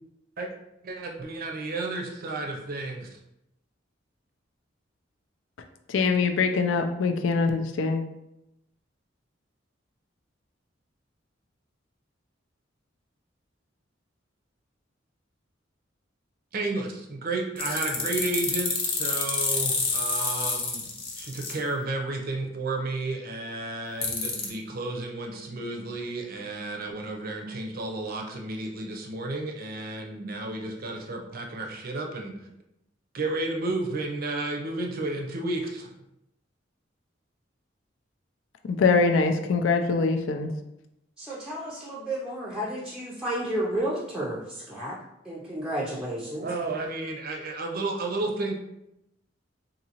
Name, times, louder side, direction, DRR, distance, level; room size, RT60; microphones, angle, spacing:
voice 1, 0.8-3.1 16.5-20.9 21.1-32.3 33.1-35.9 46.4-48.5, right 2 dB, 50° right, 2 dB, 0.5 m, -32 dB
voice 2, 5.9-8.0 38.7-40.5, left 4 dB, 80° left, 6 dB, 0.4 m, -23 dB
sound 1, 17.6-21.5 24.0-24.5, left 4 dB, 30° left, 0.7 m, -28 dB
voice 3, 41.2-45.0 45.2-46.5, right 1 dB, 5° right, -7 dB, 0.4 m, -32 dB
3.9 x 2.7 x 2.8 m, 0.86 s
head